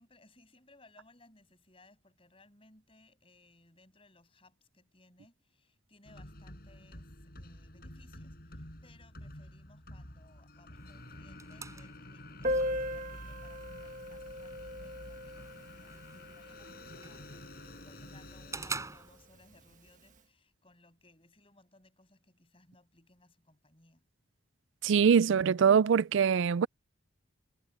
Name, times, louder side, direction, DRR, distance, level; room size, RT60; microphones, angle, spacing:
voice 1, 0.0-24.0, left 2 dB, 25° left, 7.7 m, -63 dB
sound 1, 6.0-18.7, left 1 dB, 50° left, 5.4 m, -49 dB
sound 2, 10.7-19.7, right 4 dB, 15° right, 6.2 m, -48 dB
Piano, 12.4-17.8 18.1-18.2 18.4-18.5 18.9-19.0 19.7-19.9, left 1 dB, 40° right, 1.5 m, -38 dB
voice 2, 24.8-26.7, right 7 dB, 70° right, 0.4 m, -23 dB
head